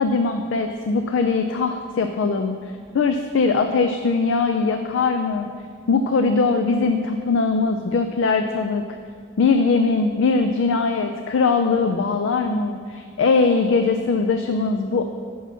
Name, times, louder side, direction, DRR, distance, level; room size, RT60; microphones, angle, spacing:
voice 1, 0.0-5.5 5.9-8.8 9.4-15.0, left 4 dB, 75° left, 6 dB, 0.4 m, -21 dB
5.8 x 5.4 x 6.1 m, 2.1 s
head